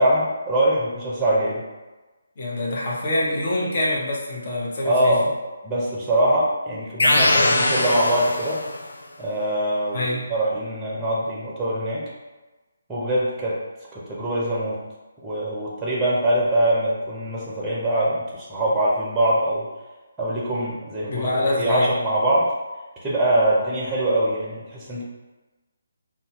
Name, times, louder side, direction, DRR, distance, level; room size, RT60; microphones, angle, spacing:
voice 1, 0.0-1.6 4.8-5.3 5.6-8.6 9.2-12.1 12.9-13.6 13.9-14.8 15.2-19.7 20.2-21.3 21.6-22.5 23.0-25.0, right 1 dB, 10° right, -5 dB, 0.7 m, -23 dB
voice 2, 2.4-5.2 9.9-10.2 21.0-21.9, left 1 dB, 45° left, -4 dB, 0.8 m, -25 dB
sound 1, 7.0-8.9, left 2 dB, 70° left, 0.3 m, -21 dB
2.7 x 2.2 x 3.0 m, 1.2 s
figure-of-eight pair, 150°, 0 cm